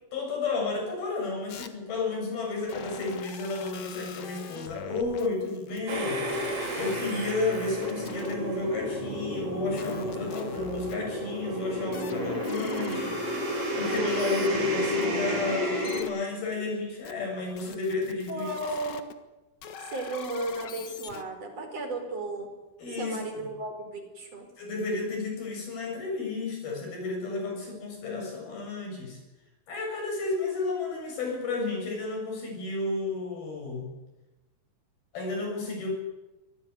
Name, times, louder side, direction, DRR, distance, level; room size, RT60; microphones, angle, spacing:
voice 1, 0.1-13.2 13.8-18.5 22.8-23.4 24.6-29.2 29.7-33.9 35.1-35.9, left 3 dB, 50° left, 2 dB, 9.0 m, -32 dB
sound 1, 1.5-1.7 2.7-6.0 6.3-8.3 9.8-10.9 11.9-16.1 17.0-19.1 19.6-21.2, left 8 dB, 80° left, 1.6 m, -42 dB
sound 2, 5.9-16.0, equal, 50° right, 7.3 m, -31 dB
voice 2, 18.3-19.0 19.8-22.5 23.0-24.4, right 2 dB, 30° right, 4 dB, 5.3 m, -34 dB
24.5 x 18.5 x 9.7 m, 1.0 s
omnidirectional pair, 5.8 m